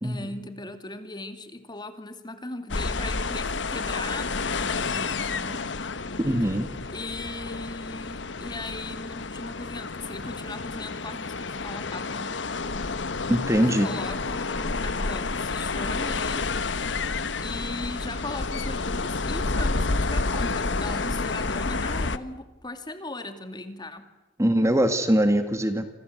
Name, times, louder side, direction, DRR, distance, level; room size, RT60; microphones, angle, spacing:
voice 1, 0.0-5.6 6.9-12.4 13.6-16.5 17.4-24.1, left 2 dB, 25° left, 8 dB, 2.5 m, -38 dB
sound 1, 2.7-22.2, left 3 dB, 75° left, 1.2 m, -30 dB
voice 2, 6.2-6.7 13.3-13.9 24.4-25.8, equal, 15° right, 8 dB, 2.1 m, -22 dB
28.0 x 26.5 x 8.0 m, 1.0 s
head